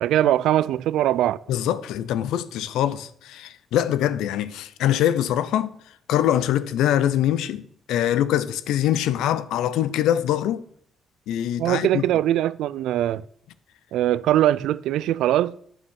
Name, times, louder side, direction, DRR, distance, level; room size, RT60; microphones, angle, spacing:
voice 1, 0.0-1.4 11.6-13.2 13.9-15.6, right 12 dB, 85° right, 0.4 m, -21 dB
voice 2, 1.5-5.7 6.1-7.6 7.9-10.6 11.3-12.0, left 11 dB, 90° left, 0.6 m, -23 dB
9.1 x 7.3 x 6.3 m
cardioid pair, 90°, 0 cm